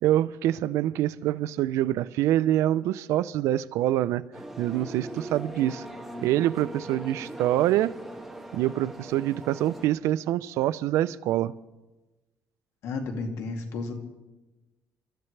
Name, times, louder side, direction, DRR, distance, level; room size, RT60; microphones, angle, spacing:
voice 1, 0.0-4.2 4.6-5.8 6.2-7.9 8.5-11.5, right 13 dB, 85° right, 0.5 m, -25 dB
sound 1, 4.3-9.9, right 1 dB, 5° right, 2.0 m, -40 dB
voice 2, 12.8-13.9, left 3 dB, 75° left, 2.3 m, -32 dB
30.0 x 13.5 x 3.3 m
cardioid pair, 135°, 5 cm